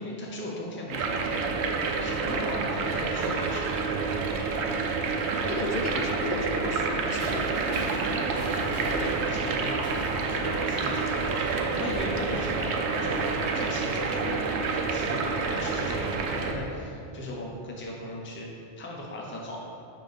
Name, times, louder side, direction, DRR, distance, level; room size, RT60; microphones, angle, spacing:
voice 1, 0.0-1.5 2.0-3.9 5.9-6.0 8.0-9.8 10.3-13.2 13.5-14.5 14.7-18.5 18.8-19.6, left 1 dB, 15° left, -3 dB, 0.6 m, -38 dB
sound 1, 0.9-16.5, right 4 dB, 70° right, 0.8 m, -28 dB
voice 2, 4.6-4.9 5.5-8.2 8.7-9.1, left 3 dB, 55° left, 3 dB, 0.6 m, -35 dB
sound 2, 7.1-12.0, right 1 dB, 35° right, 1.4 m, -40 dB
5.9 x 3.7 x 5.2 m, 2.6 s
omnidirectional pair, 1.2 m